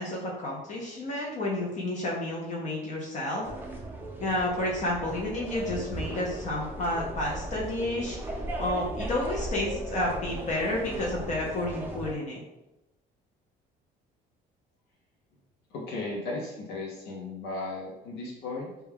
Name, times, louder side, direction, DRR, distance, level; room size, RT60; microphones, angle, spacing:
voice 1, 0.0-3.5 4.2-8.2 8.6-12.4, left 1 dB, 45° left, -3 dB, 0.5 m, -30 dB
sound 1, 3.4-12.1, right 1 dB, 10° right, 0.4 m, -37 dB
voice 2, 15.7-18.7, left 2 dB, 85° left, -3 dB, 0.6 m, -36 dB
2.2 x 2.2 x 3.3 m, 0.95 s
cardioid pair, 110°, 17 cm